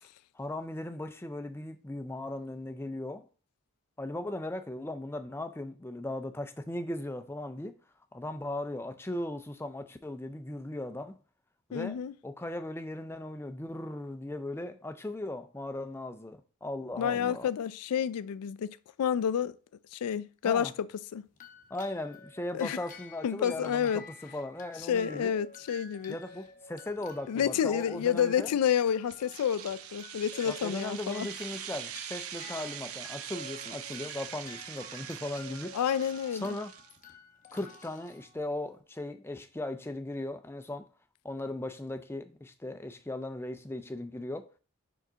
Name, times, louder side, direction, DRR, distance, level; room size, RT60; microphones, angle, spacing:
voice 1, 0.3-3.3 4.0-7.7 8.1-11.2 11.7-17.5 20.4-20.7 21.7-25.3 26.1-28.5 30.5-35.8 36.3-36.7 37.5-40.9 41.2-44.6, left 1 dB, 10° left, 0.4 m, -38 dB
voice 2, 11.7-12.1 17.0-19.6 19.9-21.3 22.5-22.8 23.2-24.0 24.9-26.1 27.3-31.3 35.7-36.6, left 8 dB, 90° left, 0.3 m, -29 dB
sound 1, 21.3-38.8, left 3 dB, 35° left, 0.8 m, -51 dB
sound 2, 29.1-37.0, right 10 dB, 75° right, 0.6 m, -43 dB
4.9 x 3.8 x 5.5 m
head